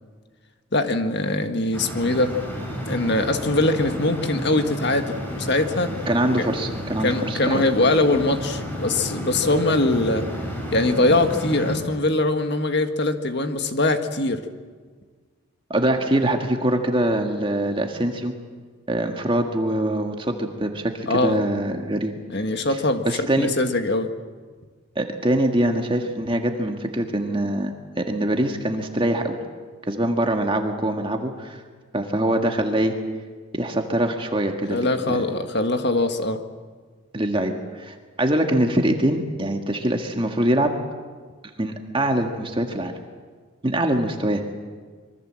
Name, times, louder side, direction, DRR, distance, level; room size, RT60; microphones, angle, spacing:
voice 1, 0.7-2.4 2.9-5.9 6.4-6.5 7.0-10.3 10.7-14.4 21.1-21.4 22.3-23.1 23.4-24.1 34.7-36.4, left 2 dB, 50° left, 7 dB, 1.7 m, -22 dB
sound 1, 1.7-11.8, equal, 10° left, 5.7 m, -32 dB
voice 2, 6.1-7.6 15.7-18.3 18.9-22.1 23.0-23.5 24.9-29.4 29.9-31.6 31.9-32.9 33.5-35.2 37.1-40.7 41.6-42.9 43.6-44.4, right 1 dB, 25° right, 4 dB, 1.7 m, -23 dB
26.0 x 23.0 x 7.6 m, 1.5 s
head